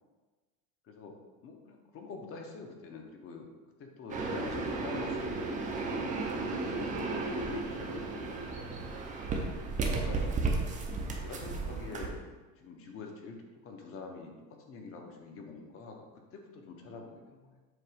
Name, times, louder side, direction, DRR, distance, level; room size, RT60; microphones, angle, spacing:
voice 1, 0.8-1.2 1.4-3.5 3.8-8.8 9.9-10.7 11.2-12.2 12.6-17.6, left 4 dB, 30° left, 3 dB, 0.7 m, -46 dB
sound 1, 4.1-12.1, right 3 dB, 20° right, 0.4 m, -34 dB
7.6 x 3.0 x 4.9 m, 1.2 s
cardioid pair, 175°, 45 cm